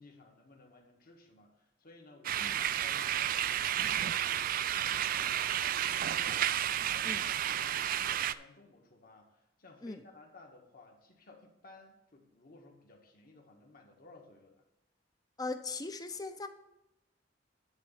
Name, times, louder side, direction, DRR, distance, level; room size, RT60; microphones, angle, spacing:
voice 1, 0.0-6.6 6.9-14.6, left 3 dB, 50° left, 2 dB, 1.5 m, -57 dB
sound 1, 2.2-8.3, right 10 dB, 50° right, 0.3 m, -31 dB
voice 2, 15.4-16.5, left 3 dB, 20° left, 8 dB, 0.6 m, -39 dB
10.5 x 4.0 x 7.3 m, 0.89 s
head